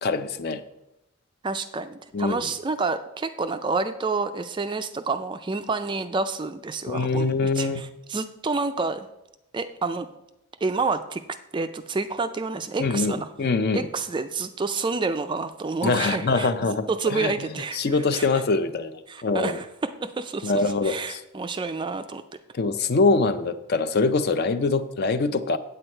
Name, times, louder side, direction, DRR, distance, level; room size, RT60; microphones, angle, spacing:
voice 1, 0.0-0.6 2.1-2.5 6.9-7.9 12.8-13.9 15.8-19.6 20.4-21.2 22.5-25.6, left 3 dB, 45° left, 0.5 m, -24 dB
voice 2, 1.4-9.1 9.5-10.1 10.6-11.2 11.5-13.3 13.7-16.5 16.9-18.3 19.1-22.2, right 4 dB, 20° right, 0.3 m, -29 dB
8.5 x 8.0 x 4.4 m
head